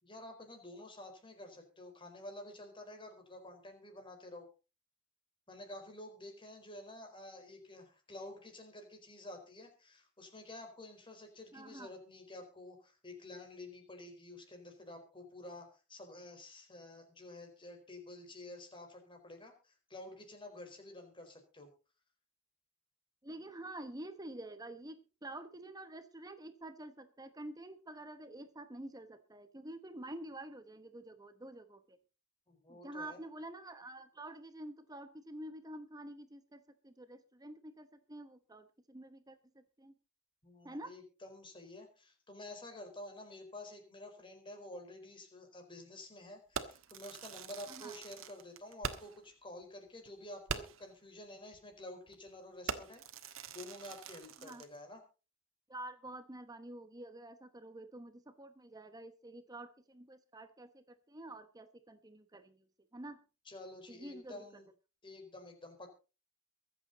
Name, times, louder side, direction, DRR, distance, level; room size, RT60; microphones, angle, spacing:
voice 1, 0.0-4.5 5.5-21.7 32.5-33.2 40.4-55.0 63.4-64.7 65.0-65.9, left 1 dB, 25° left, 4 dB, 4.5 m, -50 dB
voice 2, 11.5-11.9 23.2-32.0 32.7-39.9 40.6-40.9 47.7-47.9 54.4-54.6 55.7-62.7 62.9-63.2 63.9-64.4, right 1 dB, 20° right, 10 dB, 1.0 m, -48 dB
Fireworks, 46.5-49.3 49.6-49.7 50.1-50.2 50.5-50.9 51.5-51.7 52.1-52.3 52.7-54.8, right 5 dB, 90° right, 1.5 m, -43 dB
23.5 x 8.1 x 4.1 m, 0.33 s
head